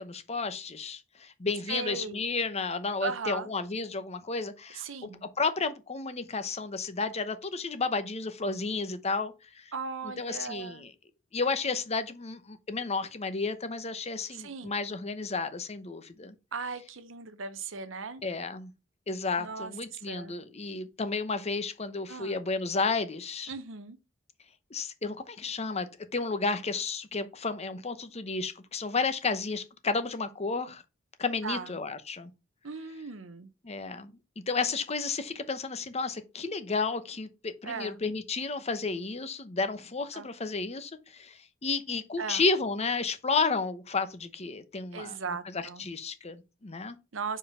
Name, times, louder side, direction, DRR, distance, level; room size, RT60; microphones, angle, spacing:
voice 1, 0.0-5.1 5.4-9.6 10.0-10.9 11.3-16.3 18.2-18.7 19.1-23.5 24.7-30.8 31.2-32.3 33.6-34.1 34.5-45.2 45.4-47.0, left 4 dB, 35° left, 0.8 m, -32 dB
voice 2, 1.7-2.2 3.0-3.5 4.7-5.2 9.7-10.9 14.3-14.7 16.5-18.2 19.4-19.7 20.1-20.3 22.1-22.4 23.5-24.0 31.4-31.7 32.6-33.5 37.6-38.0 40.1-40.3 42.2-42.4 44.9-45.8 47.1-47.4, right 4 dB, 85° right, 0.9 m, -37 dB
5.3 x 4.6 x 5.6 m
head